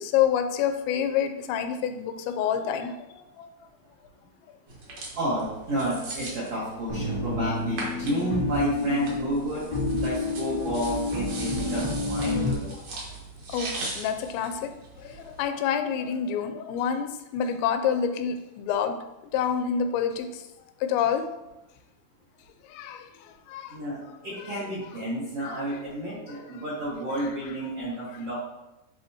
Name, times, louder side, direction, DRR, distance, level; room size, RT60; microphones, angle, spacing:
voice 1, 0.0-3.5 11.6-11.7 12.7-12.8 13.5-14.7 15.0-19.0 19.3-20.5 20.8-21.3 22.7-23.8 24.5-24.6, left 8 dB, 85° left, 7 dB, 2.7 m, -28 dB
sound 1, 4.7-15.4, right 2 dB, 70° right, 1.5 m, -40 dB
voice 2, 5.1-9.6 9.9-12.7 23.7-28.3, right 1 dB, 85° right, -8 dB, 1.3 m, -31 dB
sound 2, 6.9-12.5, left 2 dB, 45° right, 0.8 m, -29 dB
10.5 x 3.6 x 2.8 m, 0.98 s
omnidirectional pair, 5.2 m